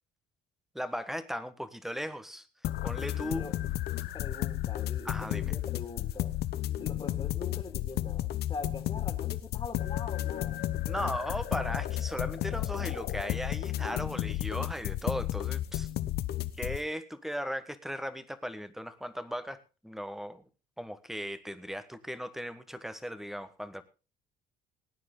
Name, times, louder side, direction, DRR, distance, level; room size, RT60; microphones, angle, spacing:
voice 1, 0.7-2.5 2.8-3.5 5.0-5.5 10.9-15.9 16.6-20.4 20.8-23.8, equal, ahead, 13 dB, 1.4 m, -37 dB
sound 1, 2.6-16.8, left 13 dB, 70° left, 1.0 m, -33 dB
voice 2, 4.1-6.4 6.8-10.6, left 4 dB, 30° left, 4 dB, 2.6 m, -43 dB
19.0 x 9.5 x 3.9 m, 0.31 s
cardioid pair, 110°, 17 cm